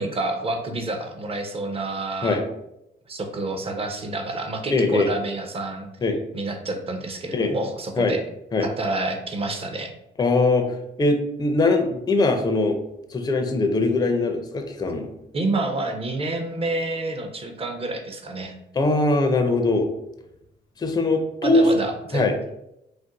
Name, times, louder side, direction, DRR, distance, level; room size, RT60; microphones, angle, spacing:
voice 1, 0.0-2.4 3.1-5.9 6.3-8.2 8.6-9.9 15.3-18.5 21.4-22.3, right 2 dB, 30° right, 4 dB, 0.6 m, -28 dB
voice 2, 4.7-5.1 6.0-6.2 7.3-7.5 8.0-8.1 8.5-8.7 10.2-10.7 11.0-12.8 13.1-15.1 18.7-19.9 20.8-21.7 22.1-22.3, left 2 dB, 20° left, 5 dB, 0.4 m, -21 dB
2.5 x 2.1 x 3.8 m, 0.83 s
cardioid pair, 90°, 20 cm